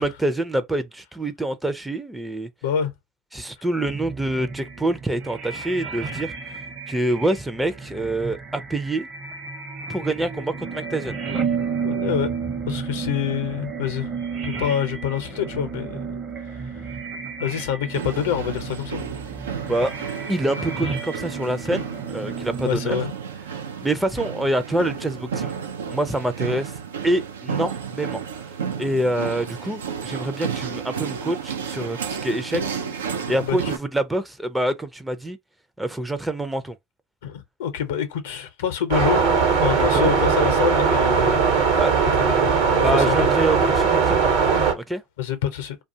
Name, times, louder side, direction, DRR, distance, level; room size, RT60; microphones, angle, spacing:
voice 1, 0.0-2.5 3.3-6.3 6.9-9.1 9.9-11.2 19.6-19.9 20.3-23.0 23.8-25.5 25.9-26.7 27.0-28.2 28.8-35.4 35.8-36.8 40.0-40.1 41.8-41.9 42.8-44.3 44.7-45.0, right 1 dB, 10° right, 0.4 m, -26 dB
voice 2, 2.6-2.9 11.8-12.3 12.7-14.1 14.5-16.2 16.5-16.9 17.4-19.0 22.6-23.1 33.4-33.7 37.2-39.2 39.5-41.8 42.4-43.3 45.2-45.8, left 9 dB, 75° left, 0.6 m, -26 dB
sound 1, 3.8-23.0, right 5 dB, 40° right, 0.8 m, -32 dB
sound 2, 17.9-33.8, right 7 dB, 85° right, 0.4 m, -32 dB
sound 3, 38.9-44.7, right 5 dB, 70° right, 1.0 m, -19 dB
2.3 x 2.3 x 2.7 m
hypercardioid pair, 80°, 0 cm